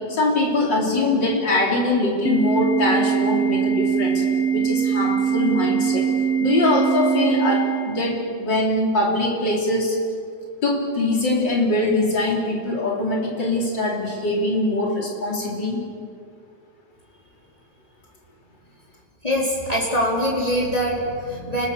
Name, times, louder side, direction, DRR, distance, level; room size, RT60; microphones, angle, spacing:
voice 1, 0.0-4.2 4.5-6.1 6.4-10.0 10.6-15.8, left 2 dB, 80° left, -2 dB, 4.8 m, -22 dB
Organ, 2.2-8.3, right 7 dB, 5° right, 2.2 m, -22 dB
voice 2, 19.2-21.7, equal, 20° left, -4 dB, 3.9 m, -23 dB
29.5 x 20.0 x 6.9 m, 2.2 s
omnidirectional pair, 1.9 m